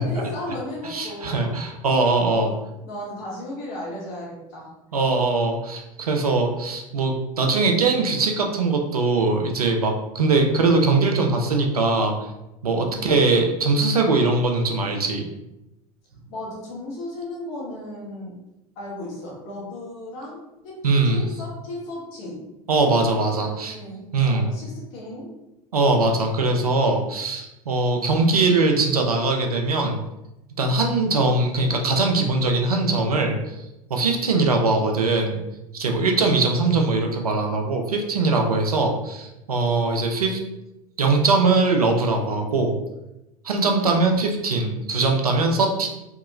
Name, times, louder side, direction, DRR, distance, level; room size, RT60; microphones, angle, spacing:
voice 1, 0.0-1.5 2.3-4.7 12.8-13.2 16.3-18.3 18.7-22.4 23.4-25.3 43.7-44.0, left 1 dB, 60° left, -5 dB, 1.3 m, -35 dB
voice 2, 0.8-2.5 4.9-12.3 12.6-15.3 20.8-21.2 22.7-23.8 24.1-24.5 25.7-30.0 30.6-35.4 35.7-40.4 41.0-42.7 43.4-45.9, right 3 dB, 85° right, 3 dB, 0.5 m, -21 dB
2.8 x 2.8 x 2.5 m, 0.94 s
figure-of-eight pair, 75°, 19 cm